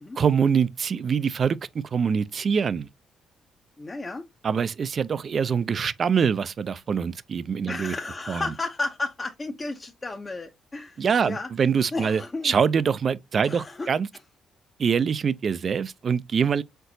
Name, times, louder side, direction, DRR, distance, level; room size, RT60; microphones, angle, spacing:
voice 1, 0.2-2.9 4.4-7.9 8.3-8.5 11.0-14.1 14.8-16.6, right 6 dB, 50° right, 0.4 m, -24 dB
voice 2, 3.8-4.2 7.7-11.5 11.9-12.5 13.4-13.9, left 3 dB, 25° left, 0.6 m, -33 dB
4.4 x 3.9 x 2.6 m
cardioid pair, 90°, 0 cm